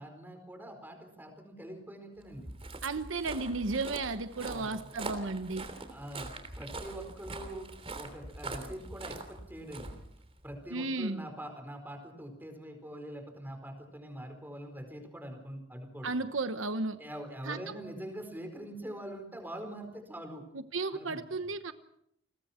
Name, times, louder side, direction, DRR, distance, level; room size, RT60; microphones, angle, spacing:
voice 1, 0.0-2.5 4.4-4.9 5.9-6.3 6.6-7.7 7.9-9.9 10.4-16.1 17.0-20.4 20.9-21.2, right 1 dB, 10° right, 5 dB, 4.5 m, -44 dB
Walk footsteps, 2.3-10.6, right 2 dB, 30° right, 3.3 m, -43 dB
voice 2, 2.8-5.7 10.7-11.3 16.0-17.0 17.4-17.6 20.5-21.7, right 3 dB, 85° right, 10 dB, 1.1 m, -34 dB
30.0 x 21.0 x 4.4 m, 0.74 s
head